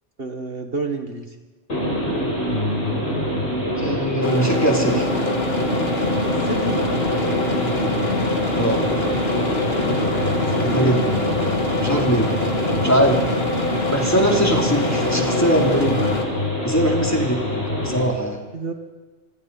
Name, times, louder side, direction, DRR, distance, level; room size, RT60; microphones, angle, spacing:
voice 1, 0.2-1.4 6.4-6.9 10.5-11.1 18.5-18.7, right 3 dB, 50° right, 4 dB, 1.9 m, -29 dB
sound 1, 1.7-18.0, left 1 dB, 85° left, 8.0 m, -25 dB
voice 2, 3.8-5.1 8.6-8.9 10.6-11.0 11.8-12.3 12.8-13.4 13.9-16.0 16.6-18.5, equal, 15° left, 0 dB, 3.2 m, -21 dB
sound 2, 4.2-16.2, left 1 dB, 55° left, 2.7 m, -24 dB
26.5 x 25.5 x 4.2 m, 1.3 s
omnidirectional pair, 1.2 m